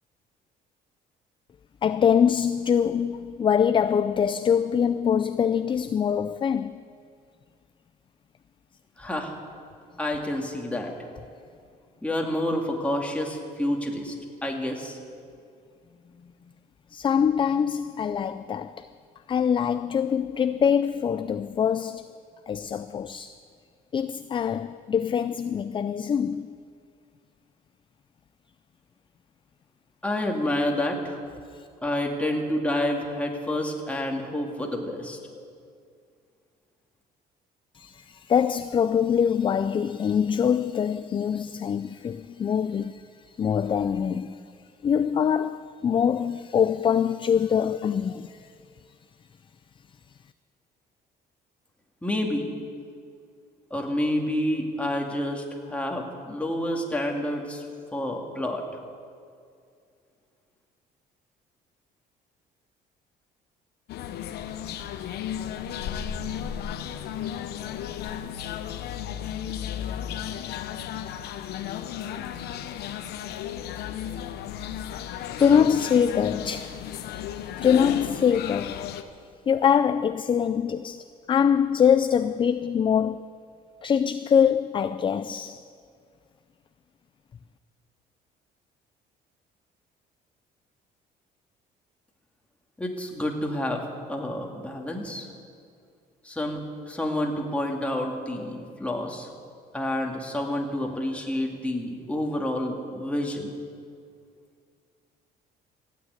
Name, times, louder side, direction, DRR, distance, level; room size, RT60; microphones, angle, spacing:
voice 1, 1.8-6.8 16.9-18.9 19.3-22.1 22.5-23.4 23.9-26.5 31.5-31.7 37.7-44.4 44.8-48.5 74.6-78.9 79.5-83.3 83.8-85.7, left 7 dB, 30° left, 0.4 m, -24 dB
voice 2, 9.0-9.4 10.0-10.9 12.0-14.1 14.4-15.0 30.0-31.2 31.8-35.2 52.0-52.5 53.7-57.6 57.9-58.6 75.4-75.7 92.8-93.8 94.1-95.3 96.2-99.3 99.7-103.5, left 1 dB, 5° left, 2.3 m, -29 dB
sound 1, 63.9-79.0, left 9 dB, 75° left, 1.0 m, -34 dB
15.5 x 9.1 x 9.5 m
cardioid pair, 110°, 17 cm